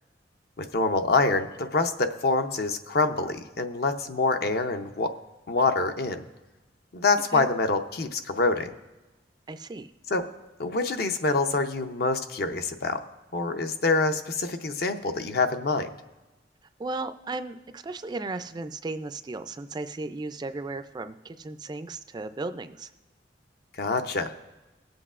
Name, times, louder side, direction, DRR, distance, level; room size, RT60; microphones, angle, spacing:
voice 1, 0.6-5.1 5.5-6.2 6.9-8.7 10.1-10.3 10.6-13.0 13.3-15.9 23.8-24.3, left 3 dB, 60° left, 8 dB, 0.6 m, -26 dB
voice 2, 9.5-9.9 16.8-22.9, right 3 dB, 25° right, 10 dB, 0.3 m, -35 dB
18.5 x 7.8 x 2.4 m, 1.1 s
head